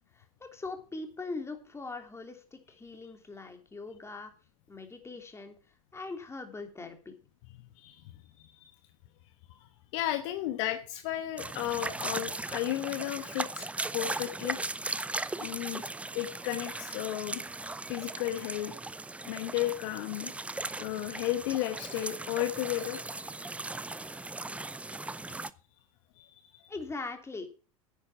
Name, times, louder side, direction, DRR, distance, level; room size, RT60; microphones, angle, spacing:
voice 1, 0.1-4.3 4.7-5.5 5.9-7.2 26.7-27.5, left 3 dB, 15° left, 5 dB, 3.2 m, -41 dB
voice 2, 9.9-13.7 13.9-14.6 15.4-15.8 16.1-17.4 17.9-18.7 19.3-20.3 20.8-23.0 26.2-26.7, left 14 dB, 60° left, 9 dB, 1.2 m, -33 dB
sound 1, 11.4-25.5, right 2 dB, 5° right, 0.5 m, -38 dB
10.0 x 9.8 x 5.8 m, 0.35 s
figure-of-eight pair, 80°, 18 cm